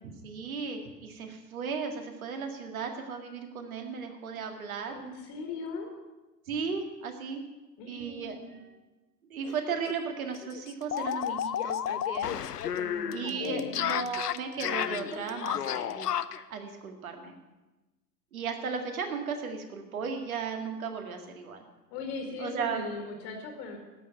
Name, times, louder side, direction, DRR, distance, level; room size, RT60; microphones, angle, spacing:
voice 1, 0.0-5.0 6.5-7.4 7.9-8.7 9.3-12.4 13.1-16.2 16.5-17.3 18.3-21.6 22.4-22.8, right 5 dB, 55° right, 5 dB, 2.0 m, -36 dB
voice 2, 4.9-5.9 7.8-8.6 12.7-14.1 21.9-23.8, left 3 dB, 35° left, 2 dB, 2.0 m, -40 dB
sound 1, 9.4-9.6 9.9-10.0 10.3-16.4, left 9 dB, 70° left, 0.7 m, -32 dB
13.0 x 6.9 x 9.0 m, 1.1 s
figure-of-eight pair, 105°, 50 cm